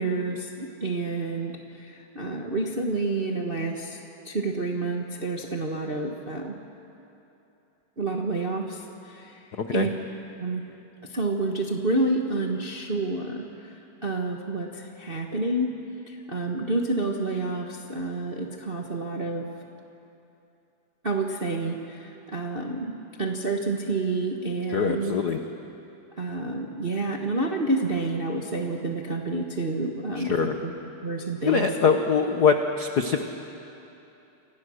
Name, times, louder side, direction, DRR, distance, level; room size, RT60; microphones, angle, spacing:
voice 1, 0.0-4.0 4.2-6.6 8.0-9.3 9.7-9.9 10.4-10.6 11.1-13.7 14.0-15.8 16.1-19.4 21.0-22.9 23.2-25.1 26.2-30.7 31.0-31.7, right 2 dB, 45° right, 1 dB, 0.7 m, -29 dB
voice 2, 24.7-25.4 30.2-30.5 31.4-33.2, left 6 dB, 85° left, 5 dB, 0.8 m, -23 dB
29.0 x 25.5 x 6.4 m, 2.9 s
omnidirectional pair, 3.4 m